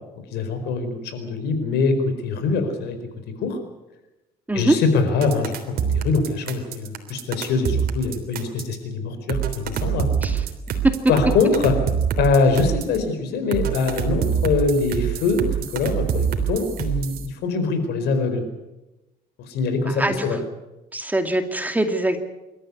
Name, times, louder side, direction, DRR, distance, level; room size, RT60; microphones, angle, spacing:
voice 1, 0.3-3.0 3.4-3.6 4.5-5.5 5.9-10.1 11.1-11.8 12.2-15.4 15.7-18.4 19.5-20.4, left 4 dB, 80° left, 8 dB, 4.7 m, -23 dB
sound 1, 5.2-8.7 9.3-13.0 13.5-17.3, right 8 dB, 60° right, 3.4 m, -25 dB
voice 2, 19.9-20.4 20.9-22.2, right 1 dB, 10° right, 6 dB, 2.4 m, -22 dB
26.5 x 13.5 x 9.8 m, 1.0 s
cardioid pair, 110°, 17 cm